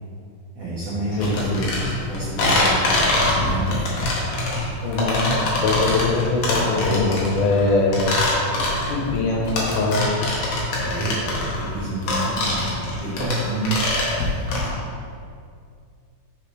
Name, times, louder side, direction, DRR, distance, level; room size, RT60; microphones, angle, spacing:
voice 1, 0.5-3.1 3.4-4.3 5.4-6.0 10.7-13.8, right 2 dB, 70° right, -10 dB, 1.5 m, -29 dB
voice 2, 1.1-1.5 4.8-5.2 5.5-8.0 8.9-10.1, left 3 dB, 85° left, -1 dB, 2.7 m, -22 dB
sound 1, 1.2-14.7, left 2 dB, 65° left, 1.9 m, -23 dB
6.8 x 5.5 x 3.2 m, 2.3 s
omnidirectional pair, 4.3 m